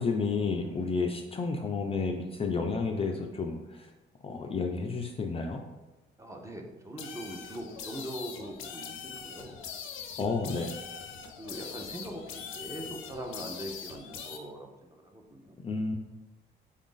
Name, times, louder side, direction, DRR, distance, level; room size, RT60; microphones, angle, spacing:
voice 1, 0.0-3.9 4.2-5.6 10.2-10.7 15.6-16.0, left 4 dB, 30° left, 3 dB, 0.4 m, -31 dB
voice 2, 6.2-9.6 11.4-15.6, right 1 dB, 15° right, 2 dB, 0.6 m, -42 dB
sound 1, 7.0-14.4, left 6 dB, 85° left, 0.5 m, -42 dB
3.9 x 2.5 x 3.7 m, 1.1 s
cardioid pair, 90°, 20 cm